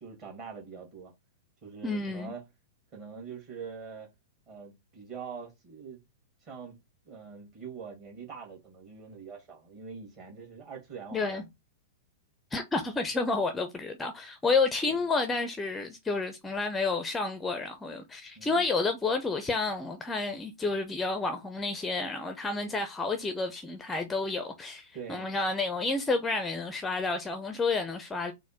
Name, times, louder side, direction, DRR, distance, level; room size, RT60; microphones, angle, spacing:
voice 1, 0.0-1.1 1.6-2.5 2.9-4.1 4.5-6.0 6.4-6.8 7.1-11.5 18.4-18.7 24.9-25.3, right 6 dB, 35° right, 1.8 m, -44 dB
voice 2, 1.8-2.3 11.1-11.4 12.5-28.3, left 3 dB, 10° left, 0.5 m, -30 dB
4.1 x 2.0 x 4.1 m
figure-of-eight pair, 100°, 0 cm